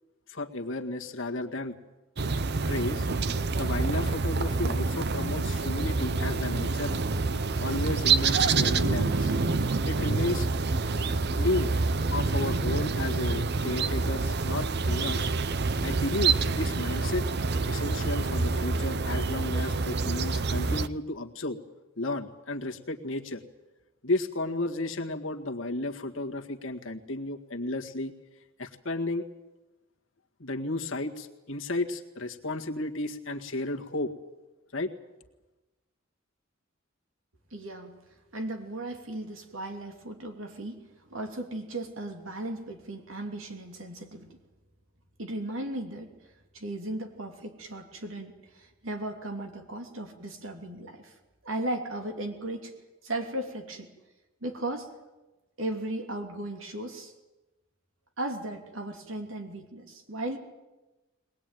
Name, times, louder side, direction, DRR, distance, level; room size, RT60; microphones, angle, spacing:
voice 1, 0.3-1.7 2.7-3.1 3.6-7.0 7.6-9.3 9.8-10.5 11.4-11.7 12.1-15.3 15.8-17.2 17.7-21.6 22.0-23.4 24.0-28.1 28.6-29.2 30.4-34.1 34.7-34.9, left 2 dB, 70° left, 3 dB, 1.8 m, -33 dB
sound 1, 2.2-20.9, right 4 dB, 55° right, 0.7 m, -27 dB
voice 2, 37.5-37.9 38.3-44.3 45.2-46.1 46.5-51.1 51.4-52.7 53.0-53.9 54.4-54.9 55.6-57.1 58.2-60.4, right 1 dB, 75° right, 4 dB, 3.0 m, -36 dB
22.0 x 20.0 x 9.3 m, 1.1 s
head